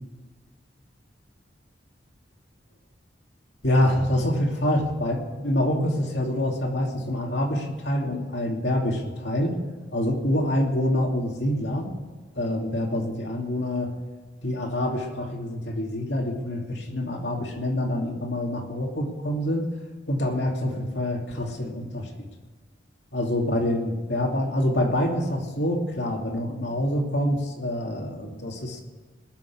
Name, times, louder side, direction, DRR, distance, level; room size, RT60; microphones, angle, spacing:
voice 1, 3.6-9.5 9.9-11.9 12.4-13.9 14.4-19.7 20.1-22.3 23.1-28.8, left 1 dB, 65° left, 1 dB, 2.7 m, -26 dB
20.5 x 7.2 x 8.6 m, 1.3 s
head